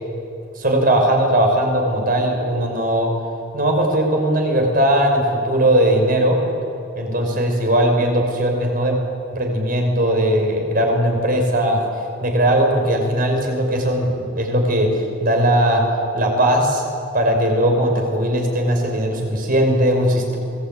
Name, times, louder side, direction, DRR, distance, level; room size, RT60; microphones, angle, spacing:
voice 1, 0.6-3.1 3.5-6.4 7.0-9.0 9.3-11.8 12.2-15.8 16.1-16.8 17.1-20.4, right 1 dB, 45° right, 2 dB, 5.4 m, -18 dB
28.0 x 20.5 x 9.2 m, 2.6 s
head